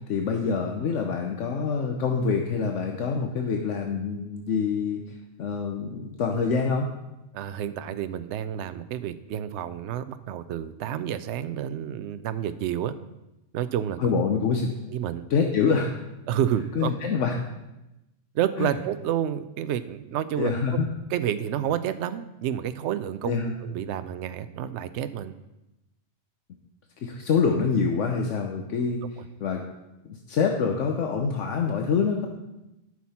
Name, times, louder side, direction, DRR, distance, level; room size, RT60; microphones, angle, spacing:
voice 1, 0.1-5.0 5.4-6.9 14.0-14.7 15.3-15.9 16.8-17.4 18.6-18.7 20.4-20.9 23.2-23.6 27.0-29.0 29.4-29.6 30.0-32.3, left 5 dB, 75° left, 3 dB, 1.1 m, -25 dB
voice 2, 7.3-12.9 13.5-14.2 14.9-15.3 16.3-16.9 18.3-20.5 21.1-25.3 29.2-29.3, right 10 dB, 70° right, 12 dB, 0.8 m, -29 dB
12.5 x 6.0 x 4.2 m, 0.95 s
omnidirectional pair, 1.3 m